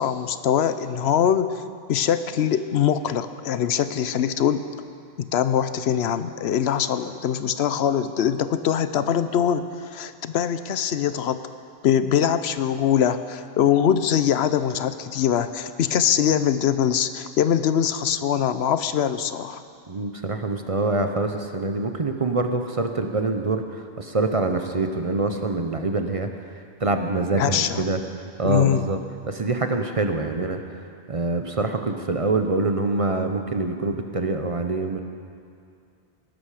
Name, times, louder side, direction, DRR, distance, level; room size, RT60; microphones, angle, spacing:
voice 1, 0.0-1.6 1.9-4.6 5.2-9.7 9.9-11.4 11.8-19.6 27.4-27.8 28.4-28.9, left 9 dB, 75° left, 12 dB, 0.9 m, -22 dB
voice 2, 19.9-28.0 28.4-29.0 29.3-30.6 31.1-35.0, right 3 dB, 35° right, 6 dB, 0.7 m, -25 dB
18.0 x 12.0 x 4.9 m, 2.4 s
omnidirectional pair, 1.1 m